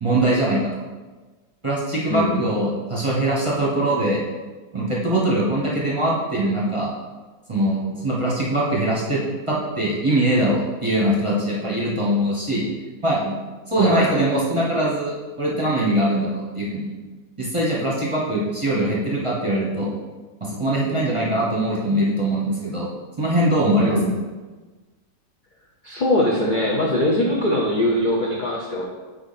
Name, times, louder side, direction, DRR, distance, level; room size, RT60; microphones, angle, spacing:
voice 1, 0.0-0.6 1.6-4.2 4.7-6.9 7.5-9.2 9.5-12.7 13.0-13.3 13.7-16.9 17.4-19.9 20.4-22.9 23.2-24.0, right 1 dB, 20° right, -6 dB, 1.0 m, -22 dB
voice 2, 2.1-2.4 13.8-14.1 23.7-24.1 25.8-28.8, left 1 dB, 50° left, -3 dB, 0.6 m, -21 dB
8.6 x 3.1 x 4.2 m, 1.3 s
omnidirectional pair, 1.8 m